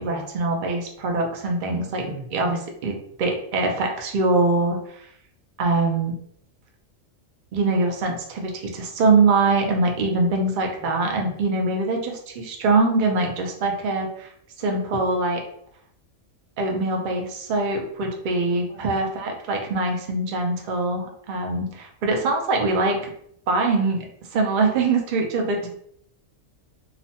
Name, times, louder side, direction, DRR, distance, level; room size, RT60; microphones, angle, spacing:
voice 1, 0.0-5.1 5.6-6.1 7.5-14.3 14.6-15.4 16.6-23.1 23.5-24.0 24.3-25.7, right 3 dB, 80° right, 2 dB, 0.4 m, -23 dB
voice 2, 2.0-2.6 10.8-11.3 18.7-18.9 25.6-25.7, right 1 dB, 45° left, -6 dB, 0.3 m, -40 dB
2.9 x 2.1 x 2.7 m, 0.68 s
omnidirectional pair, 1.4 m